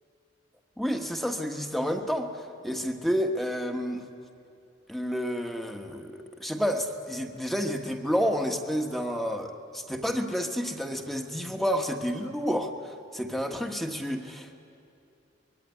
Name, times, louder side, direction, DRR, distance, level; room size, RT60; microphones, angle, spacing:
voice 1, 0.8-4.0 4.9-14.5, equal, ahead, 4 dB, 1.3 m, -30 dB
25.0 x 22.0 x 9.6 m, 2.7 s
head